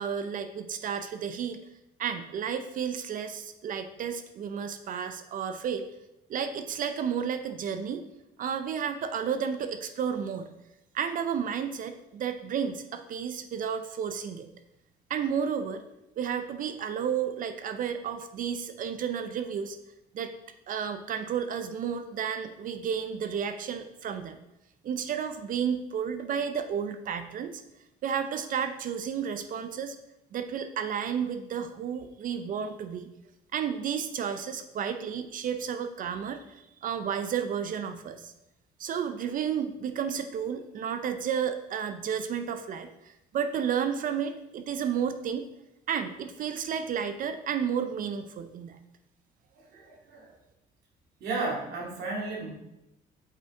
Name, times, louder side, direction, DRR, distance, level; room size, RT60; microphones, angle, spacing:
voice 1, 0.0-1.6 2.0-5.9 6.3-8.0 8.4-10.5 10.9-14.5 15.1-15.8 16.2-19.8 20.1-20.3 20.7-24.4 24.8-27.6 28.0-30.0 30.3-33.1 33.5-38.3 38.8-45.5 45.9-48.8, right 7 dB, 55° right, 9 dB, 0.6 m, -32 dB
voice 2, 49.5-50.3 51.2-52.5, right 3 dB, 75° right, -3 dB, 2.5 m, -34 dB
8.6 x 5.4 x 3.7 m, 0.90 s
cardioid pair, 110°, 17 cm